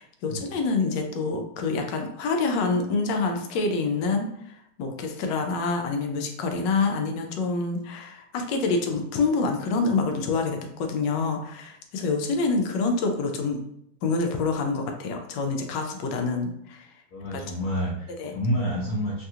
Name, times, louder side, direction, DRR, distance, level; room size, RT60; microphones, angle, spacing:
voice 1, 0.0-13.6 14.0-16.9 17.3-17.4 18.2-18.3, left 3 dB, 90° left, 4 dB, 1.2 m, -27 dB
voice 2, 17.1-19.2, equal, 65° left, -5 dB, 1.2 m, -28 dB
3.3 x 2.3 x 2.7 m, 0.76 s
omnidirectional pair, 1.9 m